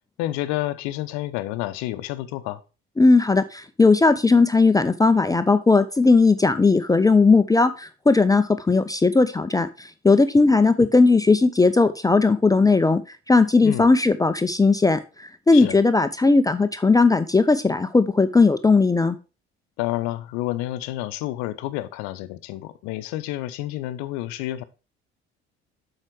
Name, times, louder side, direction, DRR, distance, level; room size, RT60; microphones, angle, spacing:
voice 1, 0.2-2.6 13.6-13.9 15.5-15.8 19.8-24.6, left 15 dB, 60° left, 0.7 m, -29 dB
voice 2, 3.0-13.0 13.3-19.2, left 3 dB, 10° left, 0.5 m, -18 dB
7.5 x 4.9 x 4.6 m
figure-of-eight pair, 50°, 31 cm